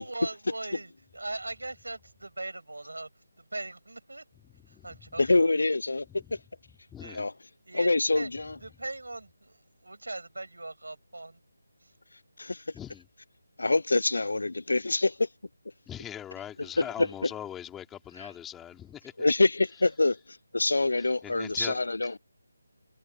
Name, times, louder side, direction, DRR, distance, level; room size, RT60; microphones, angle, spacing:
voice 1, 0.0-3.1 3.4-4.2 4.7-5.4 7.0-7.2 7.7-7.9 8.1-8.3 8.6-11.4 11.8-11.9, right 2 dB, 80° right, 7.3 m, -40 dB
voice 2, 4.4-5.1 6.1-6.3 6.9-7.3 12.7-13.1 15.9-19.3 21.0-21.8, left 10 dB, 10° left, 3.6 m, -42 dB
voice 3, 5.2-6.4 7.1-7.3 7.7-8.5 12.4-12.6 13.6-15.3 16.8-17.1 19.2-22.2, left 2 dB, 70° left, 0.4 m, -25 dB
figure-of-eight pair, 160°, 0 cm